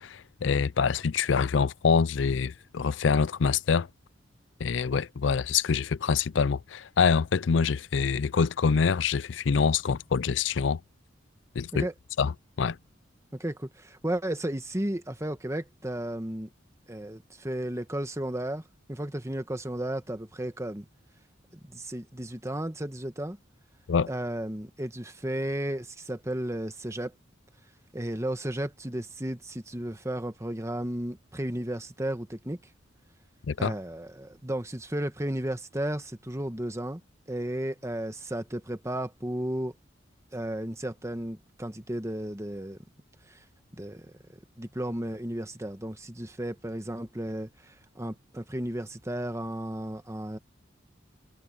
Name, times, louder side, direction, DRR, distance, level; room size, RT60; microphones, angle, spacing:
voice 1, 0.0-3.9 4.6-10.8 11.6-11.9 12.2-12.3 12.6-12.8 23.9-24.1 33.5-33.7, left 5 dB, 65° left, 0.5 m, -25 dB
voice 2, 13.3-16.5 16.9-18.6 18.9-20.8 21.6-23.4 24.1-27.1 27.9-32.6 33.6-37.0 37.3-39.7 40.3-42.8 43.3-43.4 43.7-44.1 44.6-50.4, right 1 dB, 15° right, 1.3 m, -34 dB
head